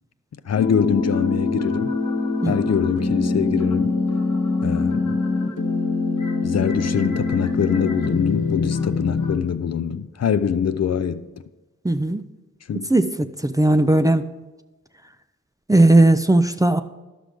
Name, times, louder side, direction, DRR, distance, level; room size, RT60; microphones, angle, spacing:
voice 1, 0.4-1.9 2.5-4.0 4.6-5.2 6.4-11.3 12.7-12.9, left 7 dB, 55° left, 0.5 m, -23 dB
sound 1, 0.5-9.4, left 3 dB, 75° left, 1.1 m, -23 dB
voice 2, 11.8-12.3 12.9-14.3 15.7-16.8, right 2 dB, 10° right, 0.4 m, -17 dB
11.5 x 6.2 x 5.1 m
wide cardioid pair, 85°, 31 cm